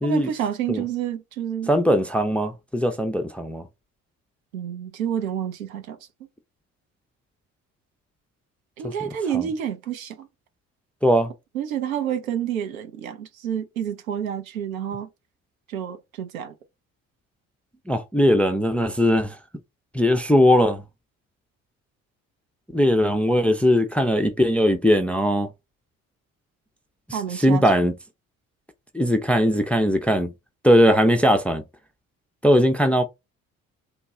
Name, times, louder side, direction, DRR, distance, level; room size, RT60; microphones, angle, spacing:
voice 1, 0.0-1.7 4.5-6.0 8.8-10.3 11.5-15.1 15.7-16.5 27.1-27.6, right 9 dB, 80° right, 0.6 m, -29 dB
voice 2, 1.7-3.6 11.0-11.3 17.9-19.4 19.9-20.8 22.7-25.5 27.4-27.9 28.9-30.3 30.6-31.6 32.4-33.0, equal, 5° left, 0.3 m, -19 dB
3.3 x 2.2 x 2.8 m
figure-of-eight pair, 45°, 41 cm